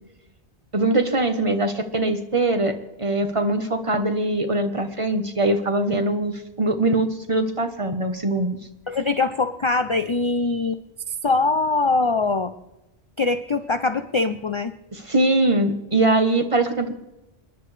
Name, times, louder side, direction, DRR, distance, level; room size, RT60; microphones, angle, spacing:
voice 1, 0.7-2.7 3.0-8.6 14.9-16.9, right 2 dB, 30° right, 7 dB, 1.1 m, -22 dB
voice 2, 8.9-10.8 11.1-12.5 13.2-14.7, left 3 dB, 35° left, 10 dB, 0.5 m, -22 dB
29.0 x 10.5 x 3.3 m, 0.98 s
omnidirectional pair, 1.1 m